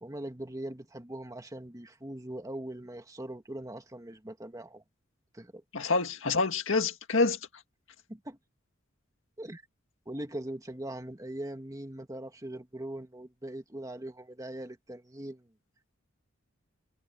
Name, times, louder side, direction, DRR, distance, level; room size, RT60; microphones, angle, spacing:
voice 1, 0.0-4.8 5.3-5.6 8.1-8.4 9.4-9.6 10.1-15.5, right 1 dB, 15° right, 2.1 m, -41 dB
voice 2, 5.7-7.4, left 3 dB, 65° left, 2.0 m, -27 dB
head